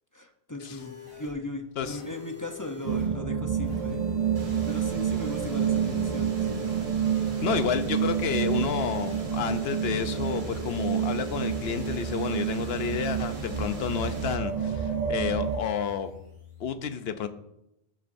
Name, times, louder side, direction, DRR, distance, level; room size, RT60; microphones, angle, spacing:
voice 1, 0.1-4.0 4.6-6.5, left 2 dB, 20° left, 4 dB, 0.6 m, -38 dB
sound 1, 0.7-16.8, left 7 dB, 45° left, 3.0 m, -45 dB
sound 2, 2.8-15.6, right 8 dB, 45° right, 0.7 m, -29 dB
sound 3, 4.4-14.4, right 2 dB, 80° right, 2.3 m, -47 dB
voice 2, 7.4-16.1 16.6-17.3, left 7 dB, 80° left, 10 dB, 0.9 m, -30 dB
15.0 x 7.5 x 2.6 m, 0.83 s
omnidirectional pair, 1.0 m